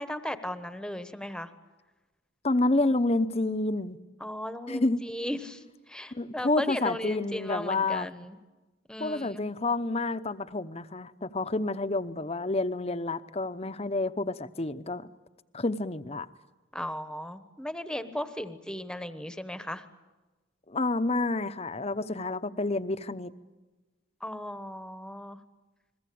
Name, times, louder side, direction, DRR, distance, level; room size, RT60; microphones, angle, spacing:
voice 1, 0.0-1.5 4.2-8.4 8.9-9.4 16.7-19.8 24.2-25.4, left 1 dB, 5° left, 10 dB, 1.1 m, -36 dB
voice 2, 2.4-4.0 4.7-5.1 6.1-8.1 9.0-15.0 15.5-16.3 20.7-23.3, left 2 dB, 30° left, 12 dB, 0.8 m, -29 dB
29.5 x 21.5 x 8.6 m, 1.2 s
head